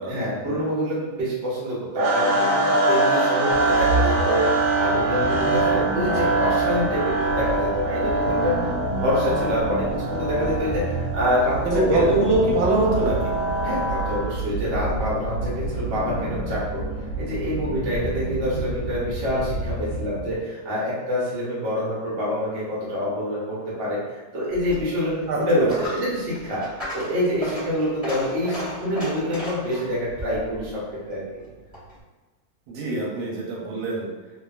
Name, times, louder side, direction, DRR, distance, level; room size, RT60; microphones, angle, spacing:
voice 1, 0.1-8.7 9.0-12.1 13.6-16.8 17.2-24.0 24.3-26.7 26.9-30.8 31.1-31.2, equal, 45° right, -7 dB, 1.0 m, -26 dB
sound 1, 2.0-14.3, right 2 dB, 70° right, 1.1 m, -24 dB
sound 2, 3.5-20.4, right 2 dB, 70° left, 1.3 m, -30 dB
voice 2, 11.6-13.3 25.3-25.8 32.7-34.1, right 2 dB, 85° right, -3 dB, 1.4 m, -23 dB
Coin (dropping), 24.5-32.0, left 1 dB, 15° right, 0.5 m, -35 dB
3.2 x 2.2 x 2.3 m, 1.2 s
omnidirectional pair, 2.2 m